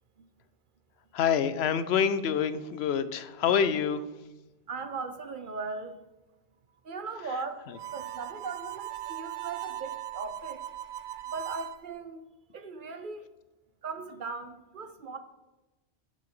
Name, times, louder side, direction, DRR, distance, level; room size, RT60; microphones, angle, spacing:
voice 1, 1.1-4.0, left 7 dB, 80° left, 0.8 m, -26 dB
voice 2, 4.7-6.1 6.8-7.7 7.9-10.7 11.3-12.2 12.5-13.3 13.8-15.2, right 4 dB, 55° right, 0.8 m, -38 dB
Harmonica, 7.7-11.8, right 14 dB, 85° right, 0.9 m, -39 dB
11.0 x 6.7 x 3.7 m
omnidirectional pair, 1.1 m